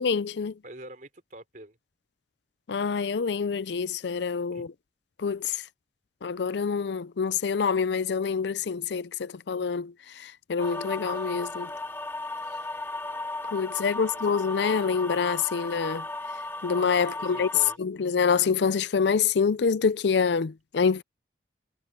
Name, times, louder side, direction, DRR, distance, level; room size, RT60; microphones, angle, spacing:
voice 1, 0.0-0.5 2.7-4.7 5.2-5.6 6.2-11.7 13.5-16.0 16.6-17.5 17.8-21.0, left 5 dB, 65° left, 0.5 m, -26 dB
voice 2, 0.6-1.8 4.5-4.7 13.8-14.2 17.0-17.8, right 1 dB, 45° right, 4.0 m, -46 dB
sound 1, 10.6-17.8, left 2 dB, 10° left, 0.9 m, -35 dB
head